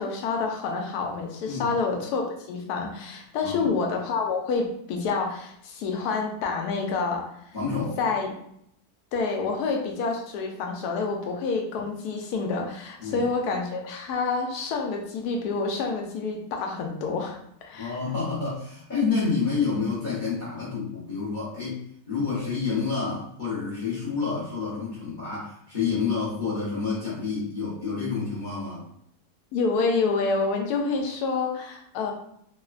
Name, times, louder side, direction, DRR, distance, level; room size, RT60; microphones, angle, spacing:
voice 1, 0.0-7.2 8.0-8.3 9.1-18.0 29.5-32.1, left 4 dB, 75° left, 2 dB, 1.1 m, -28 dB
voice 2, 3.4-3.7 7.5-8.0 11.8-11.9 13.0-13.2 17.8-28.9, left 5 dB, 45° left, -7 dB, 0.6 m, -29 dB
3.1 x 2.1 x 2.4 m, 0.72 s
omnidirectional pair, 1.8 m